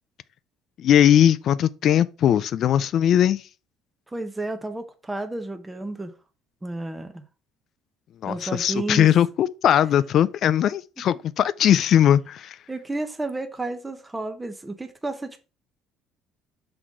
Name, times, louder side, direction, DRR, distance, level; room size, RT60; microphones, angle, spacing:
voice 1, 0.8-3.4 8.2-12.6, left 10 dB, 50° left, 0.4 m, -19 dB
voice 2, 4.1-6.1 6.6-7.2 8.3-9.1 12.7-15.4, right 2 dB, 10° right, 0.7 m, -31 dB
5.9 x 3.8 x 4.6 m
cardioid pair, 145°, 0 cm